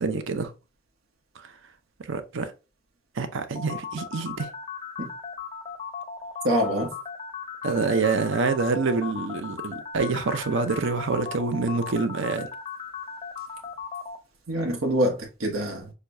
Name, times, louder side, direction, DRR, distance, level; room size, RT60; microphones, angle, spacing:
voice 1, 0.0-0.5 2.1-2.5 3.2-4.5 7.6-12.5, right 4 dB, 65° right, 0.6 m, -26 dB
sound 1, 3.5-14.2, left 6 dB, 30° left, 0.5 m, -37 dB
voice 2, 6.4-6.9 14.5-15.9, equal, 80° right, 1.1 m, -25 dB
6.5 x 2.3 x 2.6 m
head